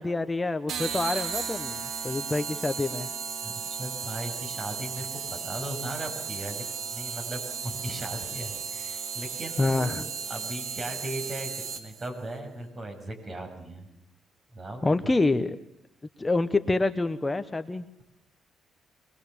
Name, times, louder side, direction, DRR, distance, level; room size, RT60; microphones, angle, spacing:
voice 1, 0.0-3.1 9.6-10.0 14.8-15.6 16.2-17.9, left 2 dB, 20° left, 9 dB, 1.0 m, -27 dB
sound 1, 0.7-12.1, right 6 dB, 65° right, 2.1 m, -35 dB
voice 2, 3.4-6.6 6.9-11.5 11.8-13.9 14.5-15.1, right 1 dB, 35° right, 5 dB, 6.9 m, -38 dB
24.0 x 21.5 x 7.2 m, 0.80 s
cardioid pair, 90°, 0 cm